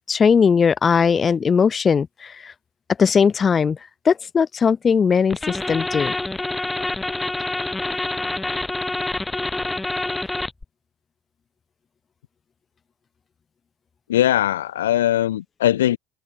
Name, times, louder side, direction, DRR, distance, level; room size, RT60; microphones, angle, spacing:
voice 1, 0.1-2.5 3.0-3.8 4.0-6.1, left 6 dB, 30° left, 1.4 m, -19 dB
sound 1, 5.3-10.6, left 2 dB, 10° left, 3.0 m, -26 dB
voice 2, 14.1-16.0, left 12 dB, 75° left, 0.5 m, -20 dB
figure-of-eight pair, 60°, 0 cm